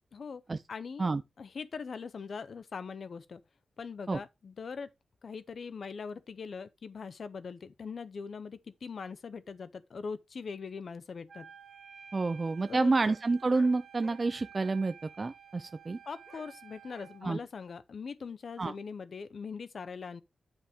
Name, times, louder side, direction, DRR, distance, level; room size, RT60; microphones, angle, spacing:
voice 1, 0.1-0.4 0.7-1.1 1.4-3.4 3.8-4.9 5.2-11.5 12.7-12.9 16.0-20.2, left 5 dB, 50° left, 0.6 m, -41 dB
Wind instrument woodwind instrument, 11.3-17.3, right 7 dB, 50° right, 2.8 m, -53 dB
voice 2, 12.1-16.0 17.2-17.4 18.6-18.7, right 3 dB, 25° right, 0.4 m, -29 dB
sound 1, 13.0-13.2 13.5-13.7 14.0-14.2 16.3-16.4 16.9-17.1, equal, 25° left, 2.9 m, -51 dB
10.0 x 5.6 x 3.4 m
wide cardioid pair, 165°, 0 cm